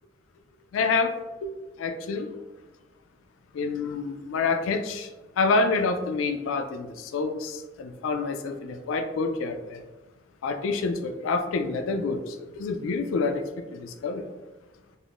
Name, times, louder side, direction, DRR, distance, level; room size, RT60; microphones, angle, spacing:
voice 1, 0.7-1.5 1.8-2.3 3.5-9.9 10.4-14.3, left 4 dB, 90° left, 7 dB, 0.3 m, -28 dB
3.4 x 2.5 x 2.4 m, 1.2 s
head